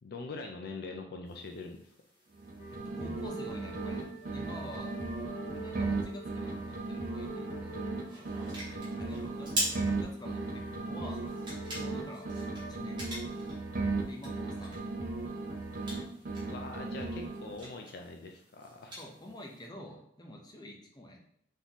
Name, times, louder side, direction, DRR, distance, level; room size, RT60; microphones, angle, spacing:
voice 1, 0.0-1.9 9.0-9.1 16.5-19.0, left 3 dB, 55° left, 3 dB, 0.4 m, -43 dB
sound 1, 1.2-19.7, equal, 25° right, 1.6 m, -45 dB
sound 2, 2.3-4.0 4.3-8.0 8.3-12.0 12.3-16.0 16.3-17.7, right 3 dB, 45° right, 0.6 m, -36 dB
sound 3, 2.6-12.7, right 2 dB, 80° left, 1.0 m, -47 dB
voice 2, 2.7-4.0 4.3-4.9 5.5-7.8 8.9-11.2 11.8-12.3 12.7-13.4 14.1-14.8 19.0-21.2, left 1 dB, 20° left, 1 dB, 0.7 m, -47 dB
3.9 x 3.7 x 3.0 m, 0.71 s
head